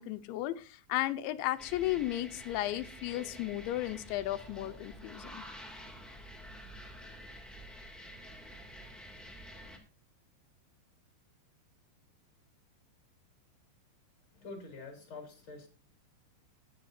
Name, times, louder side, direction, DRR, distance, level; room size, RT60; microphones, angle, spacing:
voice 1, 0.0-5.4, left 15 dB, 85° left, 3.2 m, -34 dB
sound 1, 1.6-9.8, equal, ahead, 1.1 m, -49 dB
voice 2, 14.3-15.7, left 3 dB, 30° left, 4.3 m, -46 dB
19.5 x 10.5 x 2.7 m
omnidirectional pair, 5.2 m